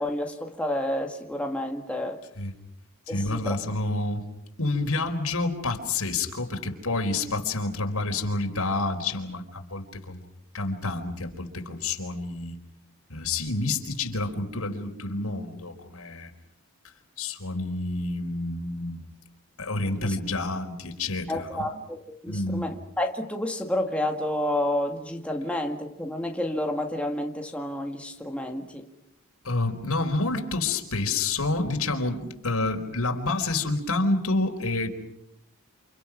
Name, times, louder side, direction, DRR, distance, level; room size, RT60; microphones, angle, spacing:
voice 1, 0.0-2.2 3.1-3.6 20.0-20.2 21.3-28.9, left 1 dB, 5° left, 2 dB, 1.9 m, -30 dB
voice 2, 3.1-4.2 4.6-10.2 10.5-12.6 13.1-16.3 17.2-19.0 19.6-21.7 22.3-22.7 29.4-34.9, left 2 dB, 80° left, 4 dB, 4.5 m, -28 dB
29.5 x 28.5 x 6.1 m, 0.79 s
head